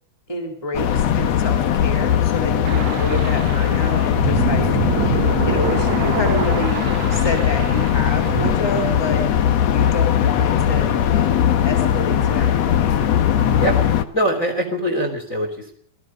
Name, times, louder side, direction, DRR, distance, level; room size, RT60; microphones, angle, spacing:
voice 1, 0.3-4.7 5.5-9.3 9.7-12.9, left 1 dB, 5° left, 4 dB, 3.5 m, -28 dB
sound 1, 0.7-14.0, left 9 dB, 60° left, 2.1 m, -19 dB
sound 2, 2.6-8.5, right 10 dB, 80° right, 2.9 m, -27 dB
voice 2, 14.1-15.7, right 1 dB, 20° left, 5 dB, 3.5 m, -22 dB
27.5 x 18.5 x 5.4 m, 0.65 s
omnidirectional pair, 4.1 m